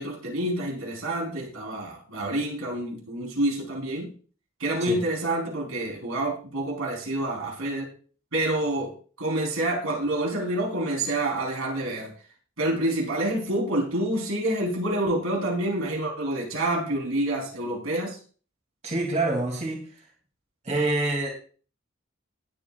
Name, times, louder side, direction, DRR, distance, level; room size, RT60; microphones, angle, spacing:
voice 1, 0.0-4.1 4.6-7.8 8.3-12.1 12.6-18.2, right 1 dB, 90° right, -1 dB, 4.0 m, -28 dB
voice 2, 18.8-19.9 20.6-21.3, right 2 dB, 35° right, 1 dB, 2.8 m, -26 dB
19.0 x 8.5 x 2.5 m, 0.41 s
head